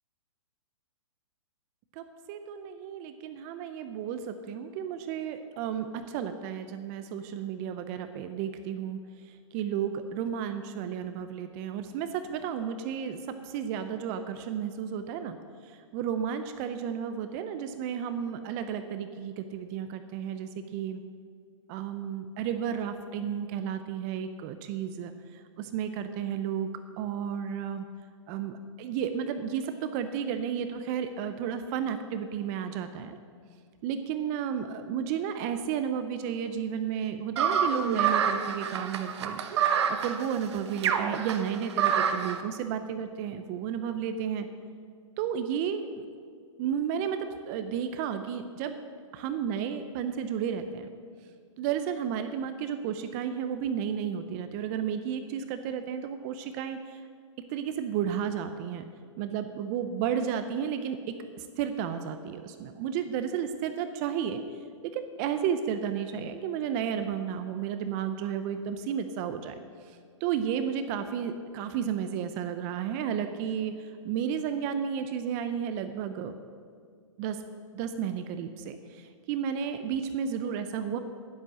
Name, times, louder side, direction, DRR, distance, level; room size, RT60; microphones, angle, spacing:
voice 1, 1.9-9.0 9.3-15.4 15.6-21.0 21.7-26.7 27.0-27.9 28.3-33.2 33.8-44.5 45.2-46.1 46.6-48.8 49.1-50.9 51.6-57.0 57.5-58.9 59.2-64.4 64.8-69.6 69.9-76.3 77.2-77.4 77.7-81.0, right 8 dB, 30° right, 9 dB, 0.7 m, -32 dB
sound 1, 37.4-42.4, right 7 dB, 55° right, 1.1 m, -27 dB
11.0 x 10.5 x 6.3 m, 2.1 s
hypercardioid pair, 140°, 17 cm